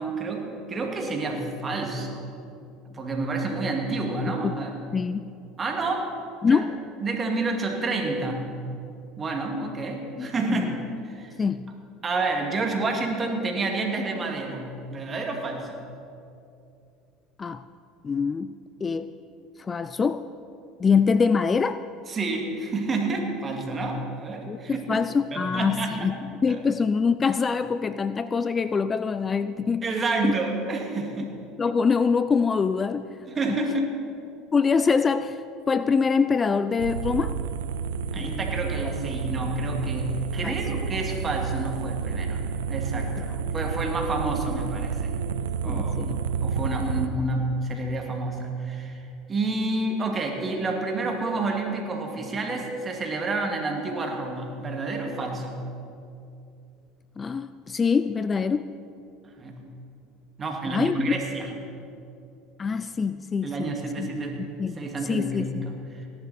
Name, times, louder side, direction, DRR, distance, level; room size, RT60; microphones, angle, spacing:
voice 1, 0.0-2.2 2.9-4.8 5.6-6.2 6.5-6.6 7.0-8.6 9.2-11.4 12.0-15.8 22.1-25.0 25.3-26.2 26.5-26.6 29.8-31.4 33.3-33.9 38.1-42.4 42.7-43.3 43.5-45.1 45.6-46.0 46.4-49.0 49.3-55.6 59.4-59.7 60.4-61.5 63.4-64.4 64.8-66.0, right 2 dB, 30° right, 2 dB, 2.3 m, -29 dB
voice 2, 4.9-5.3 6.4-6.7 10.2-10.7 11.4-11.7 17.4-17.6 18.0-18.5 18.8-19.1 19.6-20.3 20.8-21.8 24.5-26.2 26.4-29.9 30.2-30.3 31.6-33.1 33.5-33.6 34.5-35.4 35.7-37.4 38.2-38.6 40.4-40.5 43.2-43.4 45.6-46.2 57.2-58.7 60.7-61.0 62.6-64.1 64.4-65.6, left 5 dB, 25° left, 13 dB, 0.4 m, -24 dB
sound 1, 36.8-47.1, right 6 dB, 90° right, 0.5 m, -30 dB
17.5 x 11.0 x 4.3 m, 2.6 s
supercardioid pair, 90°, 0 cm